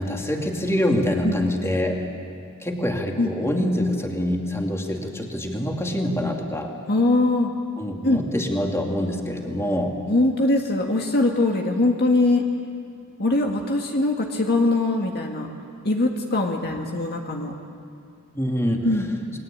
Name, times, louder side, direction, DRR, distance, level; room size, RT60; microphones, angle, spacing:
voice 1, 0.0-2.0 2.6-6.7 7.8-10.0 18.3-18.9, equal, 10° left, 1 dB, 2.6 m, -25 dB
voice 2, 6.9-7.5 8.0-8.3 10.1-12.4 13.2-15.5 15.8-17.5 18.8-19.1, left 2 dB, 45° left, 2 dB, 1.9 m, -21 dB
29.5 x 21.5 x 8.8 m, 2.4 s
head